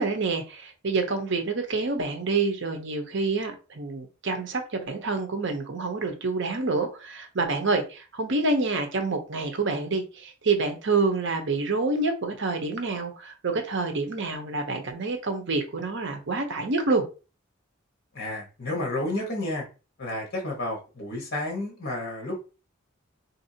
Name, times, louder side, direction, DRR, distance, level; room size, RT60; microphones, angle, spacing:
voice 1, 0.0-17.0, right 3 dB, 60° right, 0.8 m, -27 dB
voice 2, 18.1-19.6 20.0-22.4, left 1 dB, 50° left, 1.2 m, -31 dB
3.5 x 2.7 x 2.7 m
head